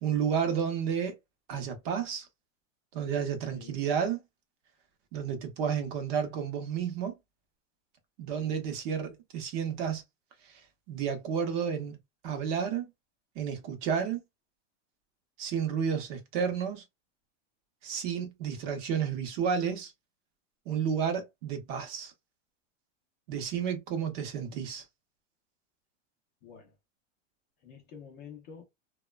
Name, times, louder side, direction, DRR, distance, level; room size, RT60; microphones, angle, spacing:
voice 1, 0.0-1.2 1.5-2.3 2.9-4.2 5.1-7.1 8.2-10.0 10.4-10.6 10.9-12.0 12.2-12.9 13.4-14.2 15.4-16.8 17.8-19.9 20.7-22.1 23.3-24.8, right 7 dB, 40° right, 0.7 m, -31 dB
voice 2, 26.4-26.7 27.6-28.6, left 7 dB, 25° left, 0.5 m, -49 dB
2.9 x 2.2 x 2.2 m
supercardioid pair, 155°, 38 cm